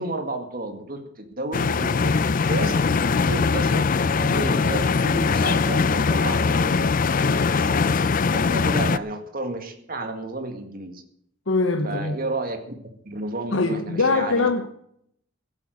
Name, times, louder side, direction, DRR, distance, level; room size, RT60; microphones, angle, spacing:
voice 1, 0.0-2.8 3.1-8.1 8.3-11.0 11.8-12.8 13.0-14.5, right 2 dB, 50° right, 2.0 m, -32 dB
sound 1, 1.5-9.0, left 4 dB, 45° left, 0.5 m, -21 dB
voice 2, 11.5-12.2 13.5-14.7, left 3 dB, 85° left, 1.0 m, -22 dB
15.5 x 8.9 x 6.5 m
head